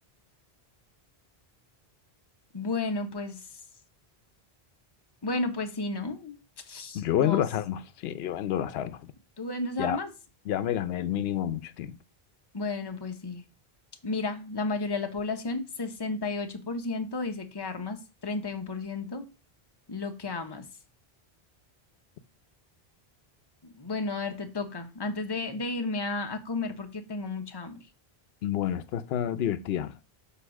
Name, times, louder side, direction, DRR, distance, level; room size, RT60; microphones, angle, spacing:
voice 1, 2.5-3.4 5.2-6.4 6.7-7.4 9.4-10.1 12.5-13.4 14.0-19.3 19.9-20.6 23.6-27.8, left 3 dB, 25° left, 0.8 m, -33 dB
voice 2, 6.9-9.1 9.8-10.0 10.5-12.0 28.4-30.0, left 11 dB, 75° left, 0.8 m, -29 dB
8.1 x 2.9 x 6.2 m
omnidirectional pair, 1.0 m